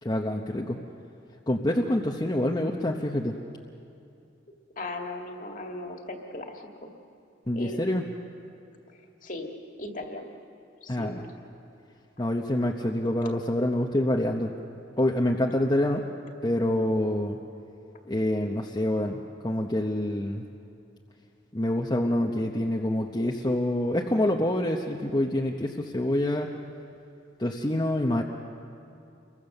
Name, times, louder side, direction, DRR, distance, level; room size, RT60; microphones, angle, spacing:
voice 1, 0.0-0.8 1.5-3.4 7.5-8.0 10.9-11.2 12.2-14.5 15.0-16.0 16.4-17.4 18.1-20.5 21.5-26.5 27.4-28.2, left 1 dB, 20° left, 0 dB, 1.0 m, -26 dB
voice 2, 4.8-6.9 7.5-8.0 8.9-9.5 9.8-10.3 10.8-11.2, left 2 dB, 45° left, 2 dB, 2.1 m, -38 dB
29.5 x 23.0 x 6.7 m, 2.6 s
head